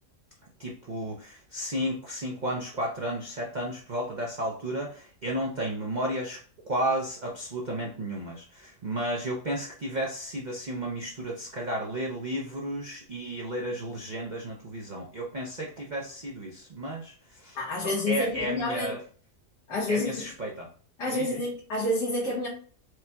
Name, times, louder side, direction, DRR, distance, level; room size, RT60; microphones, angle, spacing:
voice 1, 0.6-6.4 6.6-17.6 17.8-19.0 19.9-20.7 21.1-21.4, right 1 dB, 75° right, -2 dB, 0.4 m, -33 dB
voice 2, 17.6-19.0 19.7-20.3 21.0-22.5, left 1 dB, 90° left, -7 dB, 1.8 m, -29 dB
4.8 x 2.2 x 2.8 m, 0.42 s
omnidirectional pair, 1.7 m